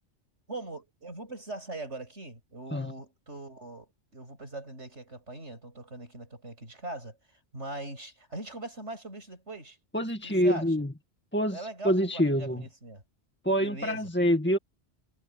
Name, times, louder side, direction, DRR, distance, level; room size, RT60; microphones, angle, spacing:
voice 1, 0.5-7.2 7.5-9.8 10.4-10.7 11.5-13.0 13.6-14.1, right 2 dB, 80° right, 7.9 m, -41 dB
voice 2, 9.9-10.9 11.3-12.6 13.4-14.6, equal, 10° left, 1.8 m, -26 dB
omnidirectional pair, 1.2 m